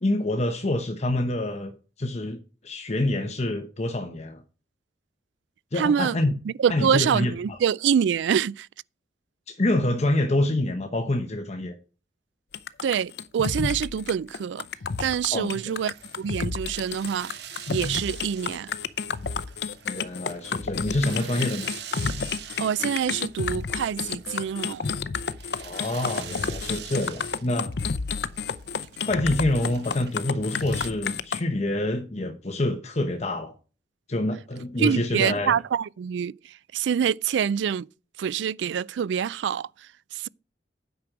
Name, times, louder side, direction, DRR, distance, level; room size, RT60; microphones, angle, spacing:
voice 1, 0.0-2.4 2.6-4.4 5.7-6.3 6.7-7.6 9.5-11.7 15.3-15.6 19.8-21.7 25.6-27.7 29.0-33.5 34.1-35.5, left 1 dB, 40° left, 1.0 m, -27 dB
voice 2, 5.7-6.2 6.5-8.7 12.8-14.7 15.0-17.3 17.7-18.7 22.4-24.9 34.8-37.9 38.2-40.3, right 8 dB, 90° right, 0.3 m, -26 dB
sound 1, 12.5-31.4, left 5 dB, 70° left, 0.6 m, -31 dB
sound 2, 15.7-30.9, right 9 dB, 65° right, 1.0 m, -44 dB
9.4 x 6.0 x 5.0 m
head